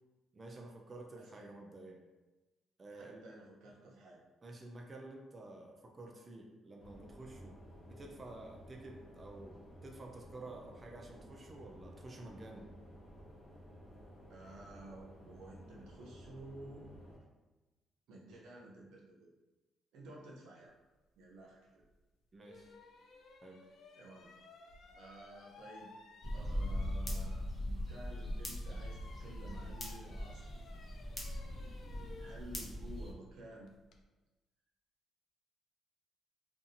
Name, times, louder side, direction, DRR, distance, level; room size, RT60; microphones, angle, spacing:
voice 1, 0.3-2.0 2.8-3.3 4.4-12.7 22.3-22.7 23.4-23.7, right 2 dB, 35° right, 0 dB, 0.4 m, -51 dB
voice 2, 1.2-1.5 2.9-4.2 14.3-16.9 18.1-19.3 19.9-20.7 21.2-21.8 23.9-24.3 25.0-25.9 26.3-30.7 32.2-33.7, right 1 dB, 85° right, -3 dB, 0.6 m, -52 dB
sound 1, 6.8-17.2, equal, 45° left, 1.2 m, -55 dB
sound 2, 21.8-21.9 22.4-27.6 27.9-34.0, left 3 dB, 70° left, 0.3 m, -58 dB
sound 3, 26.2-33.1, left 1 dB, 20° left, 0.8 m, -40 dB
2.6 x 2.4 x 2.6 m, 1.1 s
cardioid pair, 90°, 0 cm